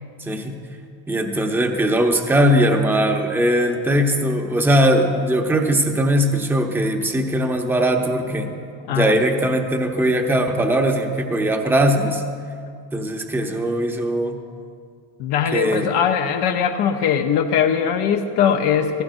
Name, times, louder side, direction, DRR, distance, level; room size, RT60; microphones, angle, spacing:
voice 1, 0.2-0.6 1.1-8.5 8.9-12.2 12.9-14.4 15.5-15.9, right 1 dB, 5° right, 3 dB, 0.9 m, -20 dB
voice 2, 15.2-19.0, left 8 dB, 65° left, 4 dB, 0.9 m, -20 dB
16.5 x 15.0 x 2.6 m, 2.2 s
supercardioid pair, 100°, 45 cm